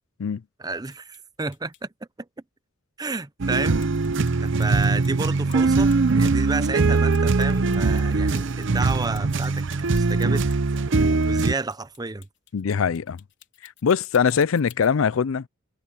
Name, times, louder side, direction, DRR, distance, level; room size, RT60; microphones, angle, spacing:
voice 1, 0.6-1.9 3.0-3.8 4.4-5.9 6.2-9.7 9.9-10.4 10.9-12.3, right 3 dB, 20° right, 0.6 m, -31 dB
sound 1, 0.8-1.2 1.5-1.8 3.8-6.1 6.5-14.9, left 13 dB, 60° left, 4.4 m, -52 dB
sound 2, 3.4-11.5, right 3 dB, 60° right, 0.7 m, -21 dB
voice 2, 12.5-13.2 13.6-15.5, left 6 dB, 75° left, 0.5 m, -22 dB
head